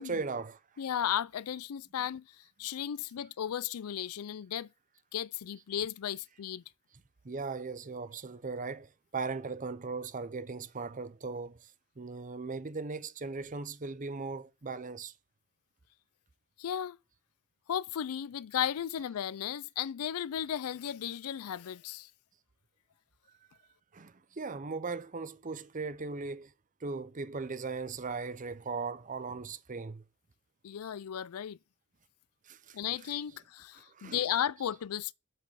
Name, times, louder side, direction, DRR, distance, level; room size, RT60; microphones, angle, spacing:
voice 1, 0.0-0.6 2.0-2.1 7.2-11.7 12.0-15.1 23.9-26.5 26.8-30.0 32.5-33.4 33.8-34.4, right 4 dB, 35° right, 0.7 m, -38 dB
voice 2, 0.8-4.7 5.1-6.6 16.6-17.0 17.7-22.1 30.6-31.6 32.7-35.1, left 9 dB, 90° left, 0.4 m, -35 dB
7.8 x 5.4 x 7.3 m
head